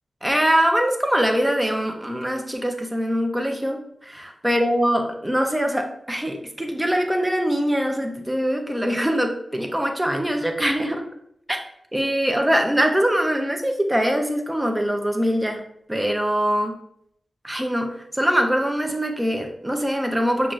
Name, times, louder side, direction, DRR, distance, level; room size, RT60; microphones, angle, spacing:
voice 1, 0.2-11.0 11.5-11.6 11.9-15.6 15.9-16.7 17.4-20.5, equal, 10° right, 3 dB, 0.6 m, -23 dB
5.9 x 2.5 x 3.0 m, 0.73 s
wide cardioid pair, 90°, 0 cm